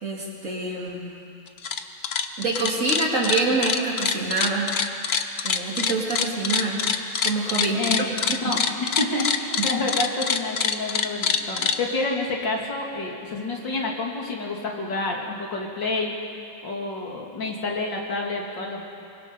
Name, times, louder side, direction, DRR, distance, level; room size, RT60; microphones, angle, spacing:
voice 1, 0.0-1.2 2.4-4.7 5.4-6.9 7.2-7.8 8.3-8.5 9.6-9.7, right 3 dB, 45° right, -4 dB, 3.4 m, -26 dB
sound 1, 1.5-11.8, left 6 dB, 50° left, 0.8 m, -24 dB
voice 2, 7.7-8.1 8.4-16.1 16.6-18.9, left 2 dB, 75° left, -1 dB, 3.2 m, -29 dB
24.0 x 24.0 x 5.4 m, 2.6 s
omnidirectional pair, 2.0 m